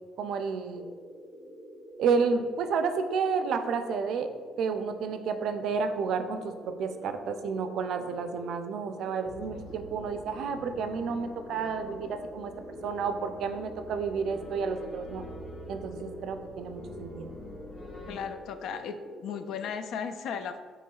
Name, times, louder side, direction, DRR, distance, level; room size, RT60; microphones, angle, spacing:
voice 1, 0.2-0.8 2.0-4.3 4.6-12.5 12.8-15.2 15.7-17.3, right 5 dB, 70° right, 8 dB, 0.4 m, -31 dB
sound 1, 0.7-19.7, equal, 5° left, 0.9 m, -46 dB
sound 2, 9.2-18.1, left 1 dB, 40° left, 1.2 m, -46 dB
voice 2, 18.1-20.6, left 7 dB, 75° left, 9 dB, 0.3 m, -36 dB
7.6 x 3.0 x 2.3 m, 1.5 s
cardioid pair, 130°, 0 cm